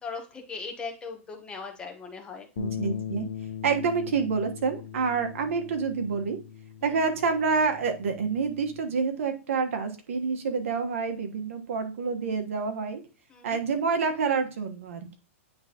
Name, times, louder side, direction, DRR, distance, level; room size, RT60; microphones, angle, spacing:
voice 1, 0.0-2.5 6.9-7.0 13.3-13.6, left 4 dB, 15° left, 3 dB, 1.0 m, -39 dB
sound 1, 2.6-8.8, left 8 dB, 80° left, 0.8 m, -39 dB
voice 2, 2.6-3.2 3.6-6.4 6.8-13.0 13.4-15.2, right 5 dB, 70° right, 5 dB, 1.3 m, -28 dB
9.3 x 3.5 x 2.9 m, 0.33 s
hypercardioid pair, 155°, 7 cm